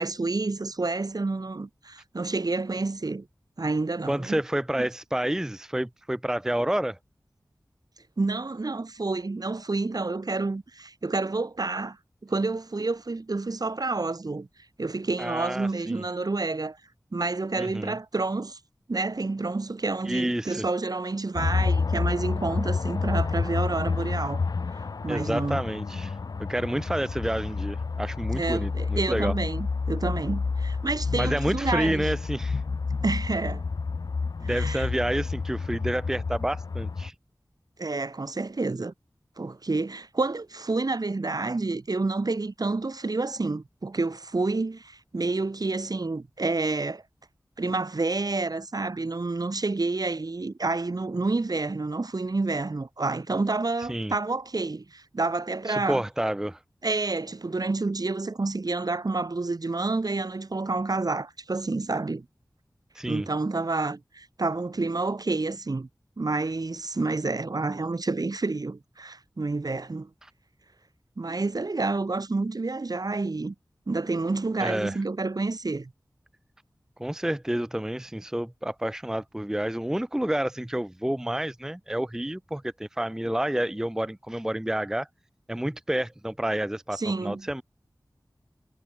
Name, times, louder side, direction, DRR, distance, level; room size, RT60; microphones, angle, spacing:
voice 1, 0.0-3.3 3.6-4.4 4.7-4.8 8.2-12.0 12.2-14.5 14.8-16.8 17.1-18.6 18.9-24.4 25.0-25.6 28.3-32.1 33.0-33.6 34.4-34.9 37.8-38.9 39.4-47.0 47.6-56.0 56.8-62.3 63.1-65.9 66.2-70.1 71.2-73.5 73.9-75.9 87.0-87.5, right 3 dB, 60° right, 2.1 m, -29 dB
voice 2, 4.1-7.0 15.2-16.0 17.6-17.9 20.0-20.7 25.1-29.3 31.2-32.6 34.4-37.1 53.9-54.1 55.7-56.6 62.9-63.3 70.2-70.3 74.6-75.0 77.0-85.1 85.5-87.6, right 1 dB, 5° right, 0.5 m, -29 dB
sound 1, 21.4-37.1, left 4 dB, 60° left, 0.4 m, -29 dB
wide cardioid pair, 55°, 7 cm